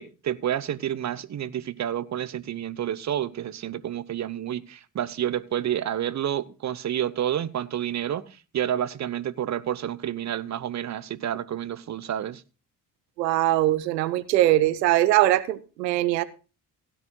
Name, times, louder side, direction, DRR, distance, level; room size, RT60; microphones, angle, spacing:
voice 1, 0.0-8.3 8.5-12.4, right 10 dB, 35° right, 0.9 m, -29 dB
voice 2, 13.2-16.2, right 15 dB, 80° right, 0.7 m, -21 dB
16.5 x 12.5 x 2.2 m
figure-of-eight pair, 40°, 49 cm